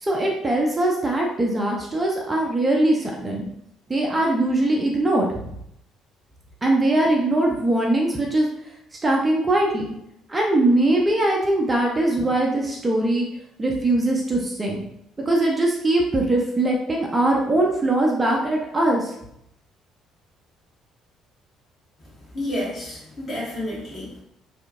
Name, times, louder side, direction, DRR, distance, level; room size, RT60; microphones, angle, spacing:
voice 1, 0.0-3.4 3.9-5.6 6.6-8.5 9.0-9.9 10.3-13.3 13.6-14.8 15.3-19.1, right 1 dB, 20° right, -1 dB, 0.5 m, -21 dB
voice 2, 22.3-24.2, left 1 dB, 40° left, -6 dB, 1.4 m, -30 dB
2.8 x 2.5 x 2.5 m, 0.76 s
figure-of-eight pair, 50°, 0 cm